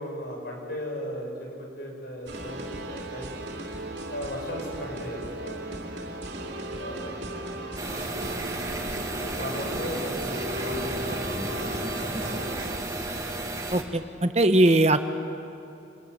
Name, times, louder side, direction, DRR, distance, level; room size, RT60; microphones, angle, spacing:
voice 1, 0.0-3.6 4.1-5.6 6.8-7.3 9.2-12.6, equal, 55° left, 0 dB, 7.0 m, -37 dB
sound 1, 2.3-12.8, right 1 dB, 60° right, 3.1 m, -36 dB
sound 2, 7.8-13.8, right 1 dB, 20° right, 2.2 m, -33 dB
voice 2, 13.7-15.0, right 1 dB, 35° right, 9 dB, 1.1 m, -20 dB
27.0 x 21.0 x 9.9 m, 2.7 s
head